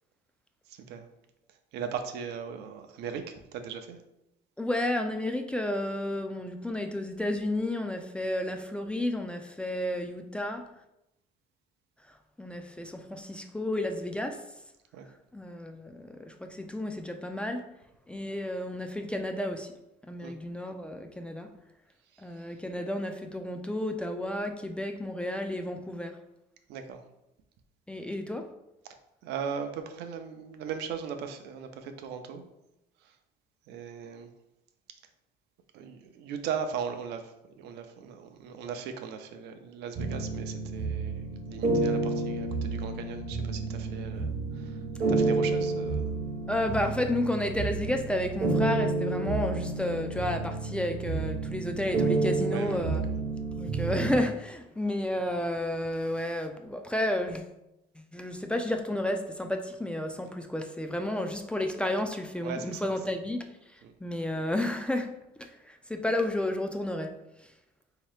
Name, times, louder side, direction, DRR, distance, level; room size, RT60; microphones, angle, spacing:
voice 1, 1.7-4.0 14.9-15.1 20.2-20.4 26.7-27.0 29.2-32.5 33.7-34.3 35.7-37.2 37.6-44.6 45.1-46.1 52.5-52.9 62.4-62.8 63.8-63.9, right 7 dB, 80° right, 7 dB, 0.5 m, -38 dB
voice 2, 4.6-10.6 12.4-14.4 15.3-17.6 18.1-19.7 20.1-21.5 22.2-26.2 27.9-28.5 46.5-53.1 53.6-57.5 58.0-63.5 63.7-65.1 65.4-67.1, left 1 dB, 5° left, 5 dB, 0.3 m, -31 dB
sound 1, 40.0-54.1, right 3 dB, 60° right, 0.8 m, -30 dB
3.6 x 2.8 x 3.2 m, 0.87 s
cardioid pair, 110°, 17 cm